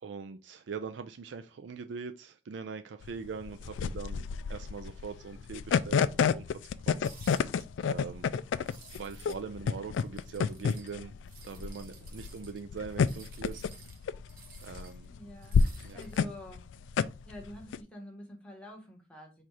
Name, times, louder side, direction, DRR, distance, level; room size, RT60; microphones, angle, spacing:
voice 1, 0.0-4.2 4.5-6.4 6.9-7.0 7.8-8.3 8.9-11.1 11.4-13.6 14.6-15.1 15.8-16.0, right 5 dB, 80° right, 0.4 m, -42 dB
sound 1, 3.0-17.8, left 6 dB, 90° left, 0.3 m, -30 dB
sound 2, 7.0-7.6 8.6-9.4 9.7-11.0 11.2-15.1 15.4-16.3, right 5 dB, 50° right, 0.9 m, -55 dB
voice 2, 15.1-16.7 17.2-19.4, left 1 dB, 5° left, 1.2 m, -47 dB
4.3 x 2.5 x 4.7 m
head